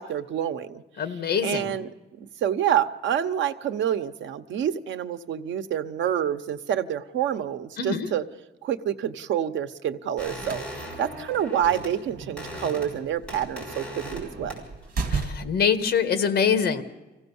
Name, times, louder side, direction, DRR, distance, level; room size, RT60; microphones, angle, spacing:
voice 1, 0.0-0.8 1.4-8.2 8.6-10.6 11.0-14.5, right 9 dB, 85° right, 10 dB, 1.0 m, -27 dB
voice 2, 1.0-1.7 7.8-8.1 15.1-16.8, left 7 dB, 55° left, 10 dB, 1.7 m, -24 dB
sound 1, 10.2-11.9 12.2-13.0 13.3-14.2 14.5-14.9, equal, 5° left, 6.3 m, -38 dB
sound 2, 10.2-15.7, right 4 dB, 50° right, 2.3 m, -35 dB
25.0 x 16.5 x 7.1 m, 1.1 s
cardioid pair, 155°, 19 cm